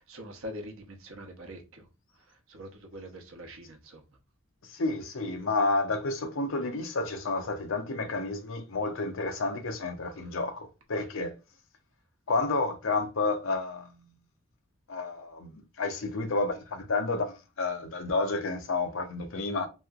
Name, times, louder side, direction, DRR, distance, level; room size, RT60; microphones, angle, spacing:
voice 1, 0.1-1.8 2.5-4.0, equal, 75° right, 0.9 m, -43 dB
voice 2, 4.7-11.3 12.3-13.9 14.9-19.7, left 3 dB, 70° left, 0.6 m, -30 dB
3.0 x 2.8 x 2.4 m
head